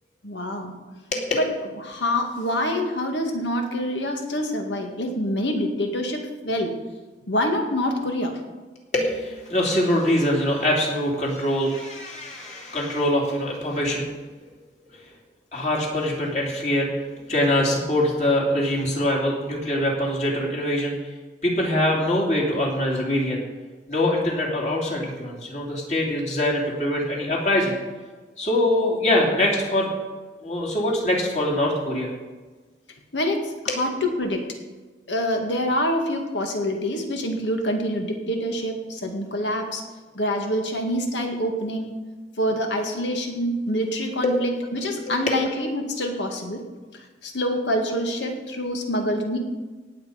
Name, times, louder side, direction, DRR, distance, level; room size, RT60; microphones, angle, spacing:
voice 1, 0.2-0.7 1.3-1.4 1.8-6.7 7.3-8.4 33.1-34.5 35.1-39.8 40.1-41.9 42.4-46.6 46.9-49.4, equal, 80° left, 3 dB, 2.1 m, -26 dB
voice 2, 8.9-14.0 14.9-15.1 15.5-21.1 21.4-23.4 23.9-27.8 28.4-29.9 30.4-32.1 33.7-33.8 44.2-44.4 45.1-45.2, left 1 dB, 40° left, -1 dB, 3.1 m, -23 dB
18.0 x 7.8 x 5.1 m, 1.3 s
head